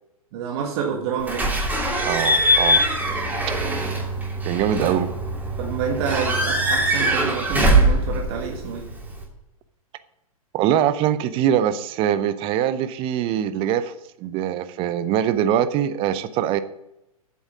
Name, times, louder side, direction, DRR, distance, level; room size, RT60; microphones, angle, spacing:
voice 1, 0.3-1.5 4.8-5.0 5.6-8.9, right 6 dB, 45° right, 1 dB, 1.7 m, -28 dB
Slam / Squeak / Alarm, 1.3-9.2, right 1 dB, 10° right, 3.1 m, -22 dB
voice 2, 2.0-2.9 4.4-5.1 10.5-16.6, right 10 dB, 30° right, 13 dB, 0.6 m, -23 dB
8.5 x 7.2 x 7.3 m, 0.87 s
figure-of-eight pair, 110°, 19 cm